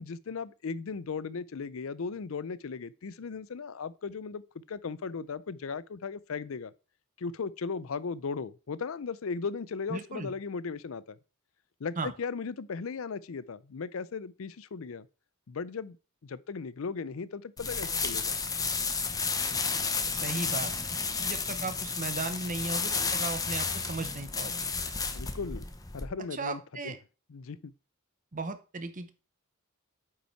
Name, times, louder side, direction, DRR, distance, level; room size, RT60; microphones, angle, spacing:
voice 1, 0.0-4.4 4.7-6.7 7.2-11.2 11.8-15.1 15.5-16.0 16.2-18.4 25.1-25.6 25.9-26.9 27.3-27.7, left 5 dB, 70° left, 0.5 m, -37 dB
voice 2, 9.9-10.3 12.0-12.1 20.1-20.7 21.2-24.7 26.3-27.0 28.3-29.1, right 3 dB, 40° right, 0.8 m, -36 dB
sound 1, 17.6-26.0, left 4 dB, 15° left, 0.8 m, -32 dB
8.5 x 5.6 x 4.5 m
head